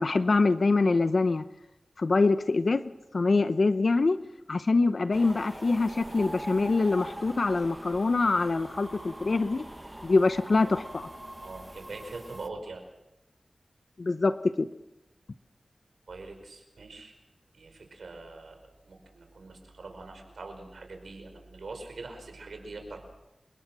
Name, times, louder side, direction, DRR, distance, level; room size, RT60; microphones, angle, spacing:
voice 1, 0.0-1.4 2.0-4.2 4.5-9.6 10.0-11.1 14.0-14.7, left 3 dB, 65° left, 11 dB, 0.8 m, -24 dB
sound 1, 5.1-12.5, right 1 dB, 20° right, 1.1 m, -43 dB
voice 2, 11.4-12.8 16.1-17.1 17.5-23.1, right 3 dB, 85° right, 5 dB, 5.2 m, -43 dB
30.0 x 18.0 x 6.2 m, 0.94 s
cardioid pair, 45°, 0 cm